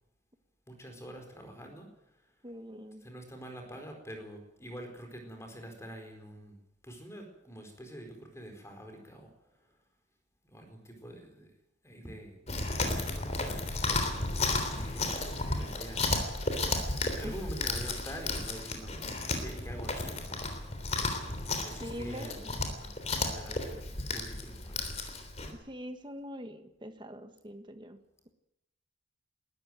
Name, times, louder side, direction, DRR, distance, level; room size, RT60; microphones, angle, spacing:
voice 1, 0.7-1.9 2.1-2.4 3.0-6.6 6.8-9.7 10.4-11.5 11.8-12.4 12.7-13.6 14.6-16.1 16.9-19.0 19.4-20.9 21.6-24.9, right 1 dB, 15° left, 4 dB, 4.5 m, -46 dB
voice 2, 2.4-3.0 17.2-17.4 21.8-22.5 25.5-28.0, equal, 25° right, 7 dB, 1.5 m, -43 dB
Chewing mastication, 12.5-25.5, left 2 dB, 35° left, 3.5 m, -33 dB
21.0 x 13.5 x 9.3 m, 0.87 s
head